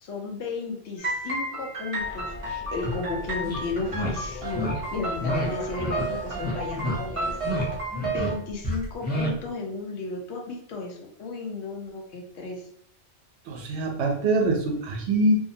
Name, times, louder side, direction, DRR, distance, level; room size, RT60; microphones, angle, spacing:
voice 1, 0.0-7.6 8.0-12.7, left 3 dB, 80° left, 1 dB, 0.9 m, -34 dB
sound 1, 1.0-8.4, right 2 dB, 40° right, 0.5 m, -32 dB
sound 2, 2.0-7.9, left 1 dB, 60° left, 1.1 m, -40 dB
sound 3, 2.8-3.0 3.4-3.6 3.9-4.1 4.5-4.7 5.2-5.5 5.8-6.1 6.3-6.9 7.3-7.7 7.9-8.3 8.6-9.3, left 1 dB, 15° left, 0.4 m, -29 dB
voice 2, 13.5-15.3, right 2 dB, 75° right, 2 dB, 0.8 m, -24 dB
2.7 x 2.0 x 2.7 m, 0.65 s
omnidirectional pair, 1.2 m